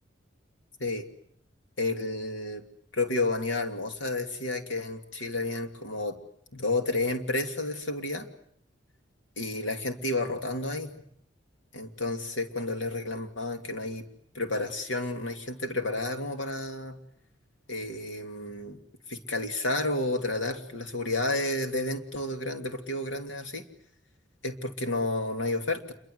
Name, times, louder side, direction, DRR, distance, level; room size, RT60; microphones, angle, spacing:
voice 1, 1.8-2.6 2.9-6.2 6.5-8.3 9.4-10.9 11.7-14.1 14.3-17.0 17.7-18.8 19.1-23.6 24.4-25.9, left 2 dB, 70° left, 5 dB, 2.8 m, -31 dB
28.0 x 23.0 x 8.1 m, 0.69 s
head